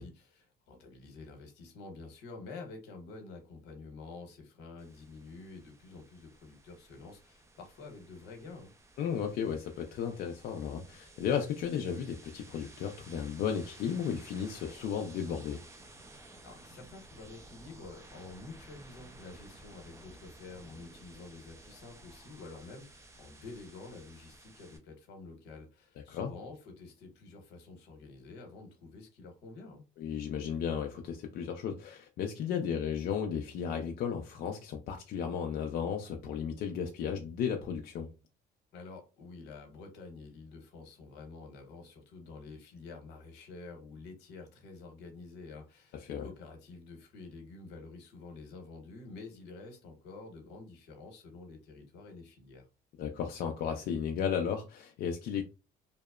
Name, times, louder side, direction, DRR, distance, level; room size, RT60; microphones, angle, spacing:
voice 1, 0.0-8.7 16.4-29.8 38.7-52.7, left 3 dB, 85° left, 0.8 m, -49 dB
sound 1, 4.8-24.8, right 2 dB, 15° right, 0.5 m, -55 dB
voice 2, 9.0-15.6 26.1-26.3 30.0-38.1 46.1-46.2 53.0-55.4, left 7 dB, 65° left, 0.4 m, -34 dB
2.8 x 2.0 x 2.3 m
cardioid pair, 110°, 17 cm